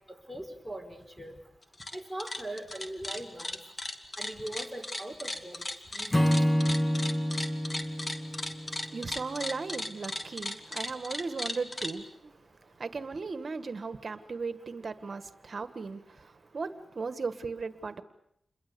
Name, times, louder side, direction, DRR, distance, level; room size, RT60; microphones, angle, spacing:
voice 1, 0.1-1.3 1.9-3.6 4.2-5.6 5.9-6.3, right 1 dB, ahead, 4.8 m, -41 dB
sound 1, 1.6-11.9, left 2 dB, 40° left, 2.4 m, -36 dB
Acoustic guitar / Strum, 6.1-9.4, equal, 20° left, 2.3 m, -28 dB
voice 2, 8.8-12.3 12.6-18.0, right 4 dB, 60° right, 1.6 m, -37 dB
28.5 x 22.0 x 6.9 m
cardioid pair, 65°, 0 cm